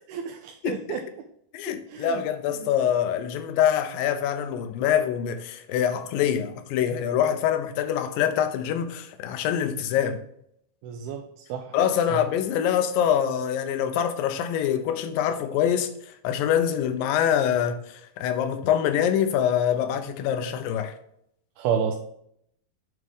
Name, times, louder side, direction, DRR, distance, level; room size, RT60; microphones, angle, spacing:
voice 1, 0.1-1.0 1.9-2.2 10.8-11.2 11.5-11.8 12.1-12.2 21.6-22.0, right 7 dB, 80° right, 2.4 m, -29 dB
voice 2, 0.6-1.0 1.5-10.2 11.7-20.9, left 9 dB, 75° left, 2.3 m, -25 dB
9.4 x 3.3 x 5.4 m
omnidirectional pair, 4.4 m